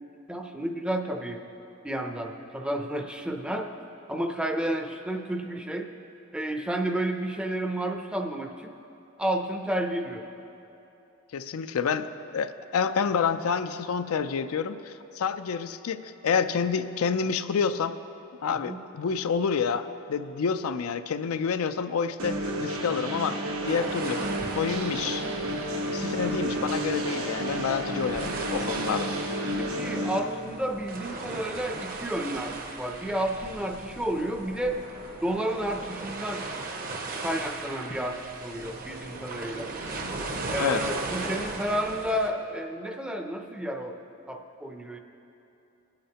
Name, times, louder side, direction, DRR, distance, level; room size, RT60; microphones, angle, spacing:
voice 1, 0.3-1.4 1.8-3.7 4.1-5.9 6.3-8.7 9.2-10.3 18.5-18.8 29.6-34.8 35.2-36.5 37.2-39.7 40.5-45.0, right 1 dB, 5° right, 4 dB, 0.5 m, -31 dB
voice 2, 11.3-18.0 18.4-23.4 23.6-24.3 24.5-25.6 25.9-29.1 40.6-40.8, left 6 dB, 85° left, 10 dB, 0.4 m, -28 dB
sound 1, 22.2-30.2, right 1 dB, 85° right, 1.1 m, -31 dB
sound 2, 23.7-42.3, right 3 dB, 45° right, 0.8 m, -37 dB
19.0 x 8.7 x 2.9 m, 2.9 s
head